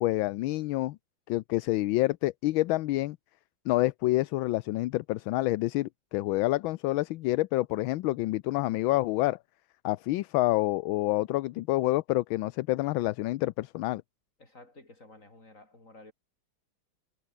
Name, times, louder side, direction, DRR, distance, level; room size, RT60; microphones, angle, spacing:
voice 1, 0.0-1.0 1.3-3.2 3.7-9.4 9.8-14.0, left 18 dB, 80° left, 1.4 m, -28 dB
voice 2, 14.4-16.1, left 2 dB, 35° left, 6.3 m, -52 dB
omnidirectional pair, 2.2 m